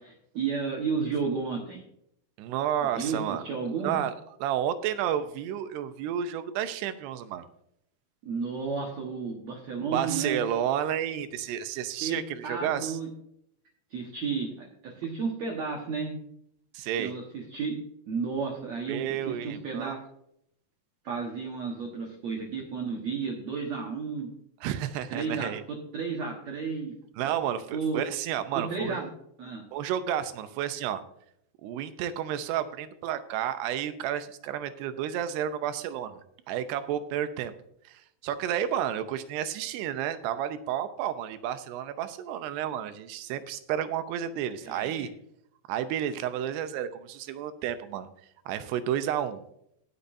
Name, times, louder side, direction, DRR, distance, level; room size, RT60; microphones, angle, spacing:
voice 1, 0.0-1.8 2.8-4.0 8.2-10.4 12.0-13.1 13.9-16.2 17.0-17.8 18.1-20.0 21.0-24.3 25.1-26.9 27.7-28.0 28.5-29.1 29.4-29.6 44.6-45.1, right 5 dB, 60° right, 0 dB, 1.9 m, -32 dB
voice 2, 2.4-3.4 3.8-4.1 4.4-7.5 9.9-13.0 16.7-17.1 18.9-19.9 24.6-25.6 27.2-29.0 29.7-31.0 31.6-36.2 36.5-37.5 37.9-45.1 45.7-48.1 48.5-49.4, right 10 dB, 85° right, 10 dB, 2.9 m, -31 dB
20.0 x 6.9 x 2.6 m, 0.74 s
omnidirectional pair, 4.7 m